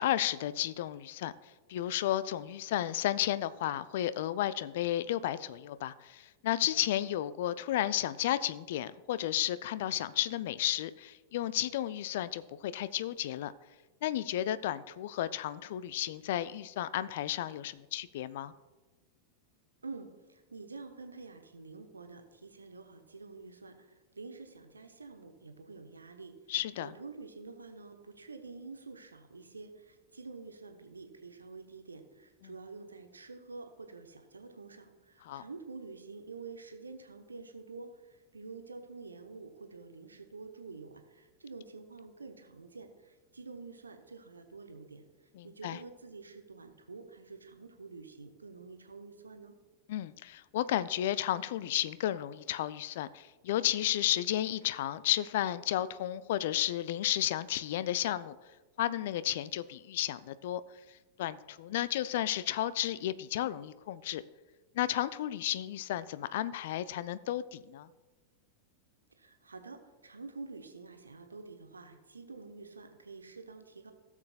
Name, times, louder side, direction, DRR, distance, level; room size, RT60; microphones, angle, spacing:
voice 1, 0.0-1.3 1.7-13.5 14.0-18.5 26.5-26.9 35.3-35.4 45.4-45.8 49.9-58.4 58.8-60.6 61.2-64.2 64.7-67.9, left 12 dB, 55° left, 16 dB, 0.3 m, -33 dB
voice 2, 19.8-26.4 26.8-45.0 45.4-49.6 69.2-73.9, right 4 dB, 75° right, 6 dB, 0.9 m, -48 dB
16.5 x 7.2 x 2.3 m, 1.2 s
figure-of-eight pair, 90°, 0 cm